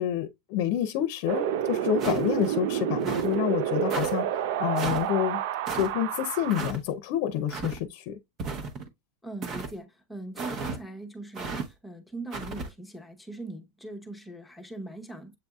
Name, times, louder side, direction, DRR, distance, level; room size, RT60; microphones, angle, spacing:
voice 1, 0.0-5.4 5.7-8.2, left 10 dB, 60° left, 0.6 m, -28 dB
Wind, 1.3-6.7, right 10 dB, 65° right, 0.4 m, -29 dB
sound 1, 2.0-2.5 3.0-3.4 3.9-4.1 4.8-5.1 5.7-5.9 6.5-6.8 7.5-7.8 8.4-8.9 9.4-9.7 10.4-10.8 11.4-11.7 12.3-12.7, right 4 dB, 35° right, 0.9 m, -34 dB
voice 2, 9.2-15.4, right 2 dB, 5° left, 0.8 m, -40 dB
7.7 x 2.6 x 2.3 m
supercardioid pair, 140°, 0 cm